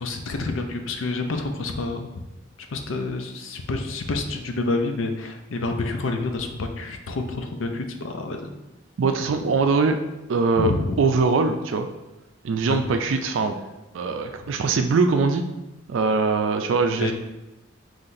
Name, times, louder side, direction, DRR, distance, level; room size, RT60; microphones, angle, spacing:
voice 1, 0.0-2.1 2.7-8.5 10.6-10.9 12.7-12.8 17.0-17.1, left 2 dB, 80° left, 5 dB, 0.5 m, -28 dB
voice 2, 9.0-10.0 10.3-10.7 11.0-11.9 12.4-13.5 13.9-15.4 15.9-17.1, right 4 dB, 75° right, 6 dB, 0.4 m, -22 dB
5.6 x 3.2 x 2.6 m, 0.98 s
head